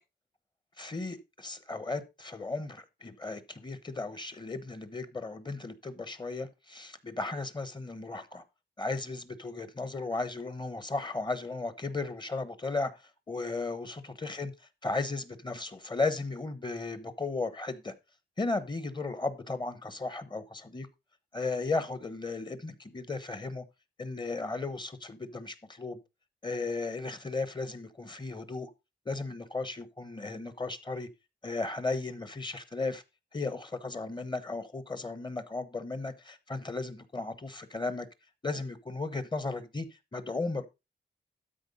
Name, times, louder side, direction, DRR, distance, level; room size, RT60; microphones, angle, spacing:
voice 1, 0.8-8.4 8.8-13.0 13.3-14.5 14.8-17.9 18.4-20.9 21.3-23.6 24.0-26.0 26.4-28.7 29.1-31.1 31.4-33.0 33.3-38.1 38.4-39.9 40.1-40.7, left 3 dB, 25° left, 1.1 m, -35 dB
12.5 x 4.5 x 5.3 m
wide cardioid pair, 135°, 19 cm